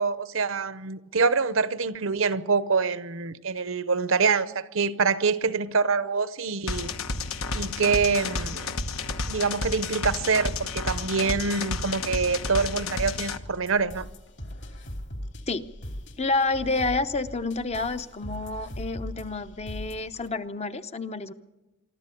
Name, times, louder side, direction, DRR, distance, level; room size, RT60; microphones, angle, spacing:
voice 1, 0.0-6.9 7.5-8.7 9.3-14.1, right 5 dB, 65° right, 0.8 m, -25 dB
sound 1, 6.7-13.4, left 3 dB, 70° left, 1.2 m, -31 dB
sound 2, 12.7-20.3, equal, 55° left, 2.8 m, -39 dB
voice 2, 16.2-21.3, left 3 dB, 30° left, 0.8 m, -29 dB
24.0 x 13.5 x 8.4 m
head